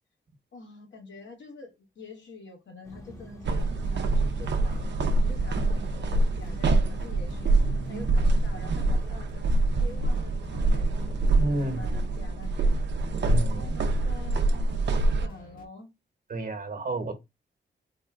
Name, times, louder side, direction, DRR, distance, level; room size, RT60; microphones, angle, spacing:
voice 1, 0.5-7.5 7.9-11.1 11.5-12.8 13.6-15.9, left 3 dB, 70° left, 1.3 m, -47 dB
sound 1, 2.8-9.1, equal, 15° left, 0.9 m, -46 dB
sound 2, 3.4-15.7, left 1 dB, 45° left, 1.4 m, -46 dB
sound 3, 3.4-15.3, right 2 dB, 65° right, 0.6 m, -25 dB
voice 2, 11.4-11.9 13.2-13.8 16.3-17.1, right 1 dB, 45° right, 1.1 m, -31 dB
4.1 x 2.2 x 3.6 m
wide cardioid pair, 110°, 20 cm